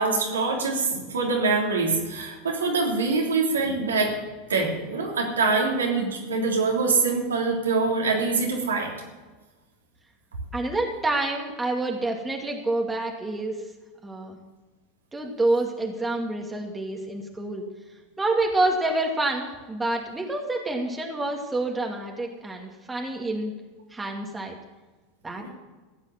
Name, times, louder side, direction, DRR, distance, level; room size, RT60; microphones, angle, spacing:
voice 1, 0.0-4.1 4.5-8.9 25.4-25.5, right 4 dB, 85° right, -1 dB, 3.4 m, -24 dB
voice 2, 10.5-13.6 14.0-14.4 15.1-17.6 18.2-23.5 23.9-24.6 25.2-25.5, right 2 dB, 15° right, 1 dB, 2.2 m, -27 dB
15.0 x 8.8 x 7.4 m, 1.3 s
hypercardioid pair, 85°, 0 cm